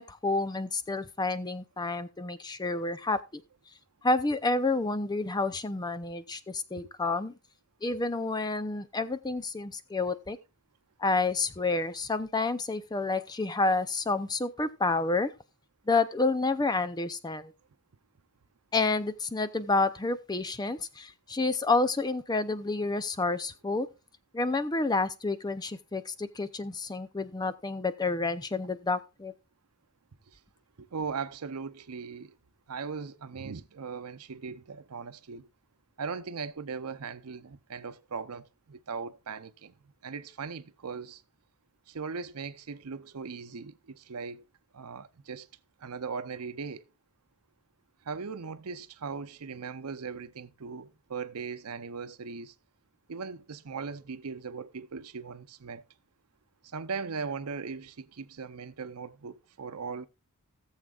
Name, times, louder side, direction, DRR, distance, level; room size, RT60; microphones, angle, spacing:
voice 1, 0.0-3.4 4.0-7.3 7.8-10.4 11.0-15.3 15.9-17.5 18.7-23.9 24.3-29.3, left 3 dB, 20° left, 0.5 m, -29 dB
voice 2, 30.8-32.4 32.7-35.5 36.0-39.7 40.0-41.2 41.9-44.4 44.7-45.5 45.8-46.8 48.1-52.5 53.1-55.8 56.7-60.1, right 5 dB, 90° right, 0.7 m, -39 dB
17.5 x 7.3 x 2.4 m
head